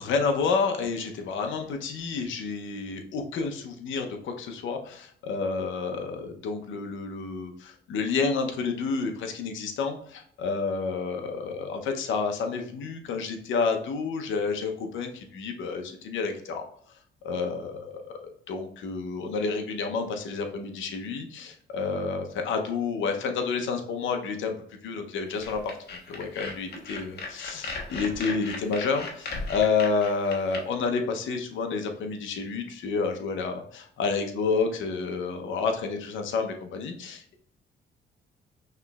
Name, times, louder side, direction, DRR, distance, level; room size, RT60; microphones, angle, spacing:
voice 1, 0.0-16.7 17.2-18.0 18.5-25.6 25.9-37.4, left 4 dB, 80° left, 5 dB, 0.8 m, -29 dB
sound 1, 25.4-30.6, left 3 dB, 55° left, 1.1 m, -37 dB
5.8 x 3.2 x 2.3 m, 0.63 s
cardioid pair, 90°, 20 cm